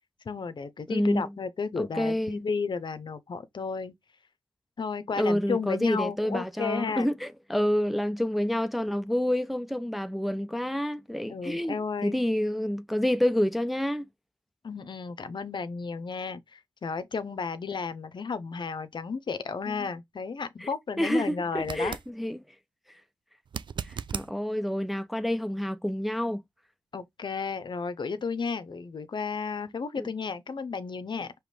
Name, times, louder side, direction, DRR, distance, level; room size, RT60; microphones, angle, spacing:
voice 1, 0.3-3.9 4.8-7.1 11.3-12.2 14.6-22.0 26.9-31.3, left 5 dB, 60° left, 0.7 m, -33 dB
voice 2, 0.9-1.3 1.8-2.4 5.2-11.8 12.0-14.1 19.7-19.9 20.6-20.7 21.0-22.4 22.9-23.0 23.9-26.4 30.0-30.1, equal, ahead, 0.4 m, -28 dB
sound 1, 21.6-22.1 23.5-24.3 27.3-27.4, right 7 dB, 65° right, 0.4 m, -36 dB
5.0 x 3.0 x 3.3 m
cardioid pair, 55°, 9 cm